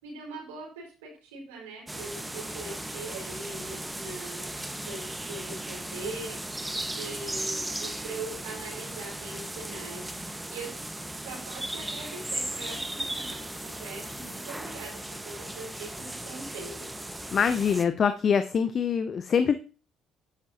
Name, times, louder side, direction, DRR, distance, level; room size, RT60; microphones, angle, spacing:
voice 1, 0.0-4.5 4.9-6.4 6.9-10.1 10.5-10.7 11.1-15.0 15.2-16.9, right 3 dB, 75° right, -2 dB, 5.3 m, -41 dB
sound 1, 1.9-17.8, right 1 dB, 10° right, 1.5 m, -36 dB
voice 2, 17.3-19.6, left 7 dB, 45° left, 11 dB, 0.8 m, -24 dB
10.5 x 10.0 x 2.9 m, 0.34 s
figure-of-eight pair, 50°, 0 cm